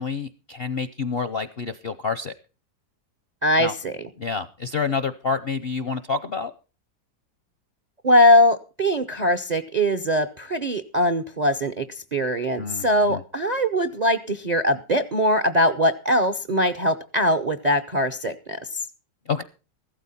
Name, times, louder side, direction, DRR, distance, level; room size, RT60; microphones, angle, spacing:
voice 1, 0.0-2.3 3.6-3.7 4.2-6.5 12.6-13.2 19.3-19.4, left 5 dB, 55° left, 12 dB, 0.6 m, -28 dB
voice 2, 3.4-4.0 8.0-18.8, equal, 45° right, 11 dB, 0.5 m, -21 dB
15.0 x 13.0 x 4.1 m, 0.34 s
omnidirectional pair, 1.9 m